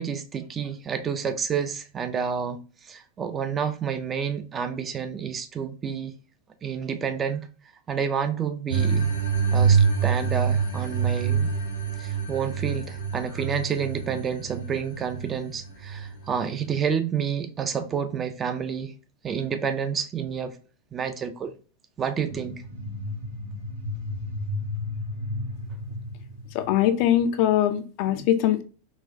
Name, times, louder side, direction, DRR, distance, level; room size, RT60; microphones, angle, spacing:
voice 1, 0.0-6.1 6.6-7.5 7.9-9.1 9.5-11.5 12.0-18.9 19.2-20.6 20.9-21.5 22.0-22.6, right 7 dB, 20° right, 0.4 m, -29 dB
sound 1, 8.7-16.8, right 6 dB, 80° left, 0.8 m, -25 dB
sound 2, 22.3-27.3, left 2 dB, 65° right, 0.8 m, -34 dB
voice 2, 26.5-28.6, left 11 dB, 45° left, 0.4 m, -22 dB
3.9 x 2.2 x 2.6 m
figure-of-eight pair, 90°, 0 cm